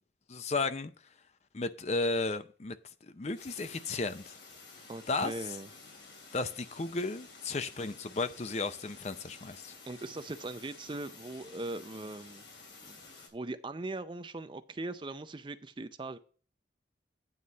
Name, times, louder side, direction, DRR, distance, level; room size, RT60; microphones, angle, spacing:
voice 1, 0.3-0.9 1.5-2.8 3.0-4.4 5.1-5.3 6.3-9.7, left 3 dB, 35° left, 0.5 m, -34 dB
sound 1, 3.3-13.3, left 3 dB, 85° left, 3.0 m, -52 dB
voice 2, 4.9-5.7 9.9-12.4 12.8-13.0 13.3-16.2, right 2 dB, 25° right, 0.4 m, -40 dB
9.3 x 4.1 x 6.2 m
head